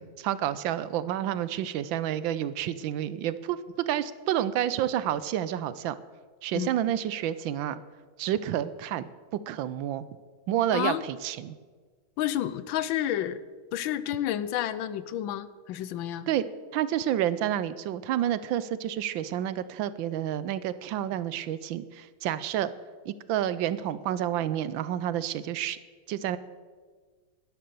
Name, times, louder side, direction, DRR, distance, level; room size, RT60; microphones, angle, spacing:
voice 1, 0.0-3.6 3.9-5.9 6.4-7.8 8.2-9.1 9.5-10.1 10.5-11.6 16.3-16.4 16.7-22.7 23.1-25.8 26.1-26.4, right 11 dB, 75° right, 15 dB, 1.3 m, -29 dB
voice 2, 10.7-11.0 12.2-13.4 13.7-16.3, left 12 dB, 80° left, 16 dB, 1.4 m, -30 dB
12.0 x 10.5 x 6.8 m, 1.5 s
omnidirectional pair, 2.2 m